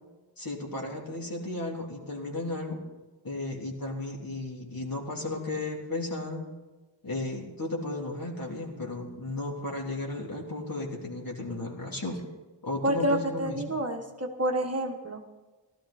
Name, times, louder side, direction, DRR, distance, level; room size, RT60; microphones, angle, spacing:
voice 1, 0.4-2.8 3.2-6.4 7.0-12.2 12.6-13.8, left 2 dB, 45° left, -1 dB, 3.2 m, -34 dB
voice 2, 12.8-15.2, right 1 dB, 30° right, 3 dB, 1.3 m, -28 dB
16.5 x 13.0 x 4.2 m, 1.2 s
wide cardioid pair, 85°, 46 cm